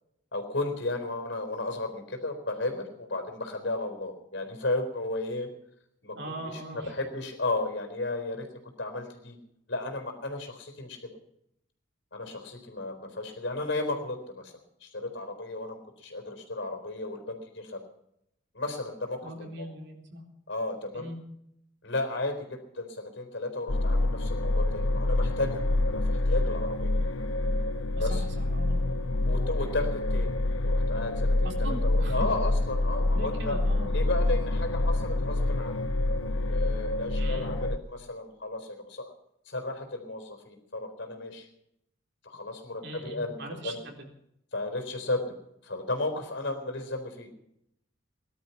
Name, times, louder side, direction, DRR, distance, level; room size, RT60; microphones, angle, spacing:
voice 1, 0.3-5.5 6.0-6.2 6.5-8.5 8.8-9.4 9.7-11.2 12.1-14.5 14.8-17.8 18.5-19.5 20.5-21.1 21.8-26.9 28.0-28.2 29.3-30.3 30.6-33.6 33.9-35.8 36.2-39.1 39.4-41.5 42.2-43.8 44.5-45.2 45.6-47.3, left 2 dB, 65° left, 6 dB, 4.1 m, -34 dB
voice 2, 6.2-6.9 19.2-20.2 20.9-21.2 28.0-28.8 31.4-32.4 33.0-33.9 37.1-37.6 42.8-44.1, right 1 dB, 60° right, 2 dB, 3.9 m, -40 dB
sound 1, 23.7-37.8, left 2 dB, 90° left, 1.0 m, -27 dB
19.5 x 12.0 x 5.8 m, 0.77 s
head